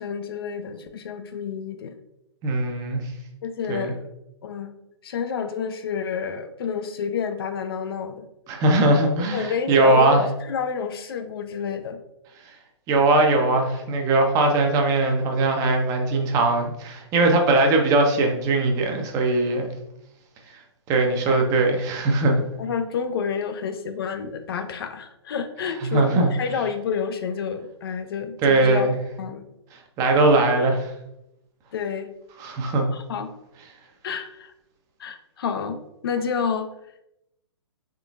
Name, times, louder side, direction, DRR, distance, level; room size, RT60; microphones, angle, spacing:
voice 1, 0.0-2.0 3.4-4.1 4.4-4.7 5.0-8.3 9.3-12.0 21.3-21.4 22.3-28.9 29.2-29.4 31.7-32.1 32.9-33.3 34.0-34.5 35.0-35.8 36.0-36.7, left 6 dB, 55° left, 7 dB, 0.4 m, -29 dB
voice 2, 2.4-3.0 3.7-3.9 8.5-10.2 12.9-19.7 20.9-22.4 25.8-26.3 28.4-28.9 30.0-30.9 32.4-32.9, right 2 dB, 25° right, 3 dB, 0.6 m, -20 dB
3.8 x 3.6 x 2.4 m, 0.84 s
figure-of-eight pair, 125°, 15 cm